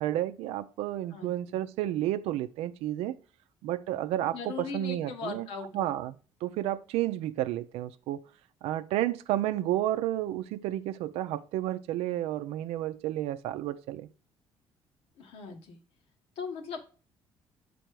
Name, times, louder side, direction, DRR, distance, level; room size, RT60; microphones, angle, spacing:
voice 1, 0.0-3.2 3.6-5.5 5.7-8.2 8.6-14.1, right 13 dB, 90° right, 0.5 m, -31 dB
voice 2, 1.1-1.6 4.3-5.9 15.2-15.8 16.4-16.9, left 5 dB, 80° left, 1.3 m, -39 dB
6.7 x 4.2 x 4.6 m
cardioid pair, 95°, 10 cm